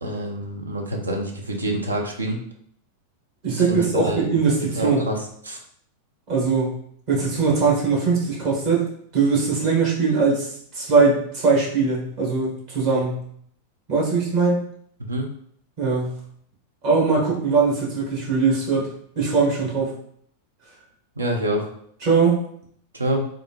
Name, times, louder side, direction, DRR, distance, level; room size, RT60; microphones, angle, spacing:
voice 1, 0.0-2.4 3.5-4.3 4.8-5.6 15.1-15.3 21.2-21.7 22.9-23.3, right 1 dB, 75° right, 2 dB, 0.5 m, -27 dB
voice 2, 3.4-5.0 6.3-6.7 7.1-8.8 9.1-13.2 13.9-14.6 15.8-16.2 16.8-18.9 19.1-19.9 22.0-22.4, right 4 dB, 45° right, -4 dB, 1.4 m, -21 dB
3.5 x 2.5 x 2.9 m, 0.65 s
figure-of-eight pair, 90°, 0 cm